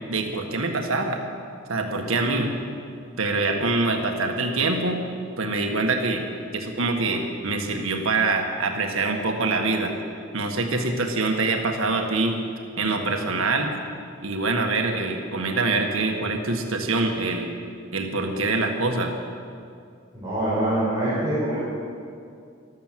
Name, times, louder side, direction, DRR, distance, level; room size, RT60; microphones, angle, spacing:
voice 1, 0.1-1.2 1.7-2.5 3.2-5.0 5.4-6.2 6.5-9.9 10.3-12.4 12.8-13.7 14.2-17.5 17.9-19.1, right 3 dB, 80° right, 3 dB, 1.6 m, -24 dB
voice 2, 20.1-21.7, right 1 dB, 15° right, -10 dB, 4.9 m, -24 dB
13.5 x 12.5 x 7.5 m, 2.4 s
head